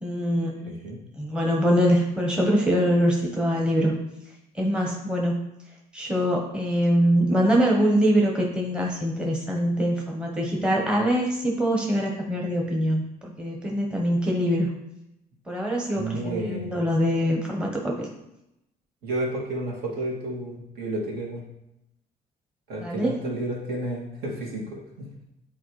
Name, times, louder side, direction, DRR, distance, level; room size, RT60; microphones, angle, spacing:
voice 1, 0.0-0.7 1.2-4.0 4.5-5.4 5.9-14.7 15.5-18.1 22.8-23.2, equal, 5° right, -1 dB, 1.0 m, -23 dB
voice 2, 0.7-1.0 15.9-16.8 19.0-21.4 22.7-25.1, right 1 dB, 70° right, -3 dB, 2.3 m, -31 dB
9.2 x 4.3 x 3.2 m, 0.87 s
cardioid pair, 110°, 17 cm